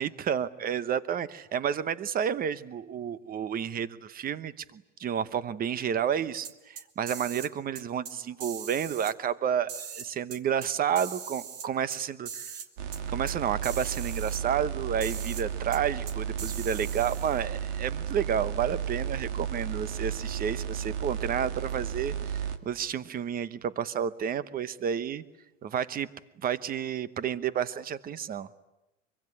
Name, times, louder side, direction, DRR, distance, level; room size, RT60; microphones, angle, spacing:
voice 1, 0.0-12.6 13.1-25.2 25.6-26.1 26.4-28.5, right 8 dB, 25° right, 16 dB, 1.0 m, -31 dB
hihat open, 6.4-7.5 7.8-8.1 8.4-9.1 9.7-10.7 11.0-12.0 12.3-12.7 12.9-13.0 13.3-13.4 13.6-14.4 15.0-15.4 15.7-15.8 16.1-17.4, right 7 dB, 45° right, 2.2 m, -40 dB
sound 1, 12.8-22.6, right 8 dB, 70° right, 2.2 m, -34 dB
24.5 x 24.0 x 9.7 m, 0.95 s
supercardioid pair, 140°, 36 cm